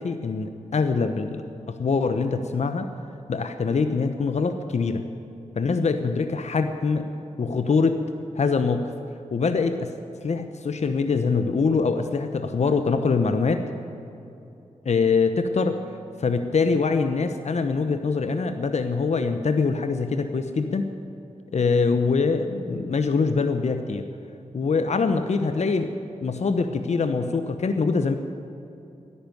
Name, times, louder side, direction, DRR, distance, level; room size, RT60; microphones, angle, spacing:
voice 1, 0.0-1.4 1.7-2.9 3.3-5.0 5.6-7.0 7.4-8.0 8.4-8.8 9.3-9.9 10.2-13.6 14.9-15.8 16.2-20.9 21.5-24.0 24.5-25.9 26.2-28.2, left 4 dB, 60° left, 8 dB, 0.9 m, -23 dB
13.0 x 11.0 x 9.3 m, 2.8 s
cardioid pair, 45°, 13 cm